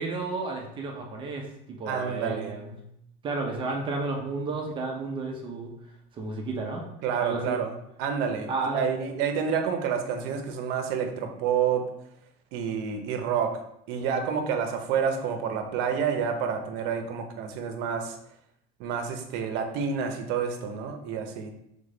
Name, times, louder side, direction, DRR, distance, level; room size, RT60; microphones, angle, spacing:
voice 1, 0.0-2.8 3.2-5.7 6.1-6.8 7.2-7.6 8.5-8.9, right 3 dB, 25° right, 1 dB, 0.6 m, -32 dB
voice 2, 1.9-2.5 7.0-11.9 12.5-13.5 13.9-18.2 18.8-21.5, right 7 dB, 65° right, 5 dB, 0.7 m, -29 dB
3.6 x 3.6 x 3.8 m, 0.76 s
cardioid pair, 170°, 19 cm